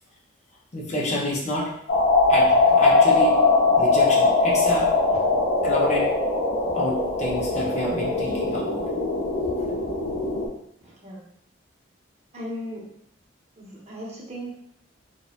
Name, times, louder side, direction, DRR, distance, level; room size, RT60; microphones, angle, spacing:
voice 1, 0.7-1.7 2.3-3.5 3.8-4.9 5.6-6.1 6.7-8.8, left 1 dB, 35° left, -4 dB, 0.5 m, -28 dB
sound 1, 1.9-10.5, left 3 dB, 85° left, 0.6 m, -21 dB
voice 2, 10.8-11.2 12.3-12.8 13.6-14.5, equal, 35° right, -4 dB, 0.6 m, -36 dB
2.6 x 2.1 x 2.4 m, 0.69 s
head